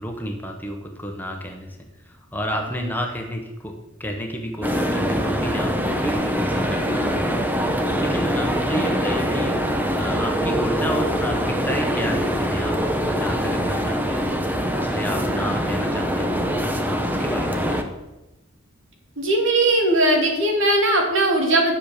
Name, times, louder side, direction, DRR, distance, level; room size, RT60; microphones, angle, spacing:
voice 1, 0.0-1.8 2.0-3.7 4.0-14.4 14.8-16.6 17.1-17.8, equal, 10° left, 2 dB, 1.4 m, -31 dB
sound 1, 4.6-17.8, equal, 10° right, 1.0 m, -23 dB
voice 2, 19.2-21.7, right 1 dB, 65° right, 1 dB, 2.6 m, -19 dB
11.5 x 7.3 x 6.8 m, 1.0 s
head